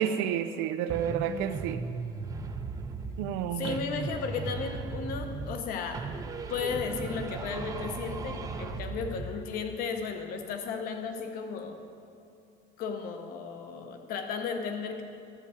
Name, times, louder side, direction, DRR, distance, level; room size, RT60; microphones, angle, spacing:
voice 1, 0.0-1.8 3.2-3.8, right 9 dB, 85° right, 10 dB, 0.6 m, -30 dB
sound 1, 0.9-3.4 3.6-5.7 5.9-9.4, right 4 dB, 20° right, 0.4 m, -37 dB
voice 2, 3.6-6.1 6.5-11.8 12.8-15.0, left 5 dB, 50° left, 6 dB, 0.9 m, -35 dB
13.5 x 4.7 x 7.0 m, 2.5 s
cardioid pair, 170°, 19 cm